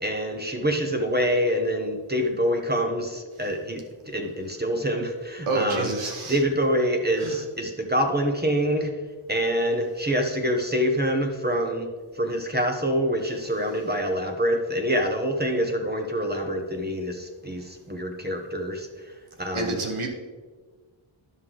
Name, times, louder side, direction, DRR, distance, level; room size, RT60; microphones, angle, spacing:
voice 1, 0.0-6.0 6.3-8.9 9.3-11.9 12.1-19.1 19.4-19.8, equal, 20° right, 3 dB, 0.8 m, -26 dB
voice 2, 5.5-6.4 7.2-7.4 19.5-20.1, right 3 dB, 80° right, 2 dB, 1.3 m, -28 dB
11.0 x 6.3 x 3.8 m, 1.4 s
wide cardioid pair, 155°, 49 cm